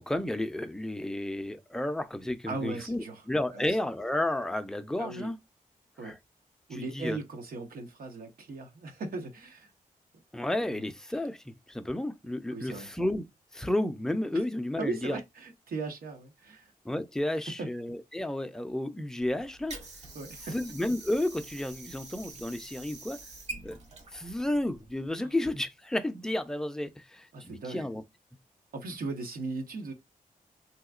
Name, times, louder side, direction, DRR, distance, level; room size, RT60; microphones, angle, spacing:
voice 1, 0.0-5.4 6.0-6.1 6.7-7.2 10.3-13.2 13.5-15.2 16.8-19.8 20.5-23.2 23.6-23.8 24.1-28.0, left 1 dB, 5° left, 0.4 m, -32 dB
voice 2, 2.5-3.2 3.5-3.8 5.0-5.3 6.0-6.2 6.7-9.7 10.7-10.8 12.5-12.9 14.3-14.4 14.8-16.7 17.6-17.7 20.1-20.6 25.2-25.3 27.3-27.9 28.7-29.9, right 3 dB, 85° right, 1.0 m, -38 dB
Water / Sink (filling or washing), 19.2-25.2, right 2 dB, 50° right, 1.0 m, -46 dB
3.5 x 2.8 x 2.3 m
wide cardioid pair, 145°, 15 cm